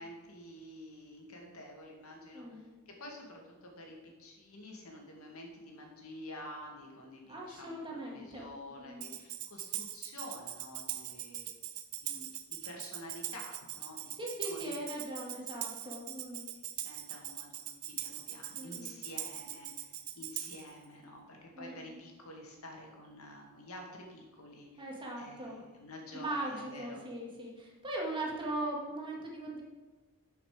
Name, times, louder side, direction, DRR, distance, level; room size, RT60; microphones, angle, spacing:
voice 1, 0.0-11.6 12.0-14.8 16.5-24.9 25.2-27.0, left 1 dB, 75° left, 0 dB, 2.2 m, -49 dB
voice 2, 2.3-2.7 7.3-8.5 8.8-9.1 14.2-16.5 18.5-19.1 21.6-22.0 24.8-25.6 26.1-29.6, right 1 dB, 25° right, -2 dB, 2.1 m, -40 dB
Tambourine, 9.0-20.7, right 12 dB, 75° right, 0.8 m, -41 dB
13.0 x 5.9 x 5.0 m, 1.2 s
head